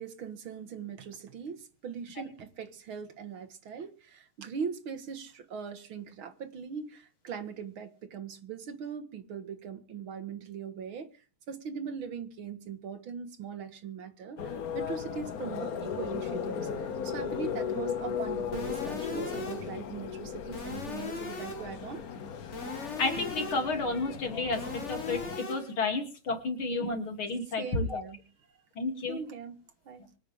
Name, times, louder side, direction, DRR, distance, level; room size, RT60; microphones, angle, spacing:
voice 1, 0.0-11.1 11.5-22.0 27.6-28.2 29.1-29.6 29.9-30.1, right 6 dB, 75° right, 2.3 m, -40 dB
sound 1, 14.4-25.4, left 7 dB, 50° left, 1.3 m, -36 dB
sound 2, 18.5-19.8 20.5-21.8 22.5-23.8 24.5-25.8, left 3 dB, 35° left, 2.1 m, -39 dB
voice 2, 23.0-28.0 28.8-29.2, left 3 dB, 75° left, 3.7 m, -31 dB
24.5 x 9.2 x 3.6 m
omnidirectional pair, 2.3 m